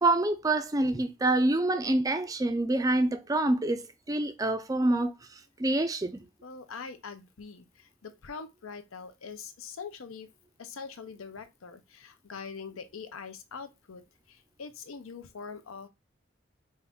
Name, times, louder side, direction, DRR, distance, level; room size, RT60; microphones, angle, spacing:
voice 1, 0.0-6.2, right 2 dB, 15° right, 0.4 m, -27 dB
voice 2, 6.4-10.3 10.6-15.9, left 5 dB, 90° left, 0.7 m, -43 dB
5.3 x 2.5 x 3.5 m
head